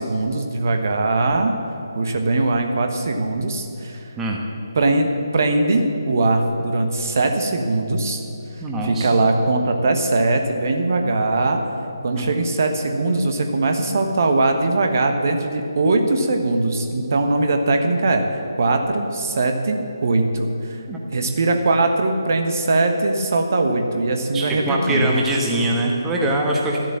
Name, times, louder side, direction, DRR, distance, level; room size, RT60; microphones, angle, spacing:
voice 1, 0.0-1.5 2.0-4.1 4.7-5.1 5.3-8.2 8.8-11.6 12.0-18.2 18.6-20.8 21.1-25.1, right 2 dB, 45° right, 5 dB, 1.2 m, -20 dB
voice 2, 8.6-9.1 12.2-12.3 20.9-21.0 24.3-26.8, right 1 dB, 10° right, -1 dB, 1.3 m, -23 dB
13.0 x 7.6 x 7.5 m, 2.9 s
figure-of-eight pair, 150°, 2 cm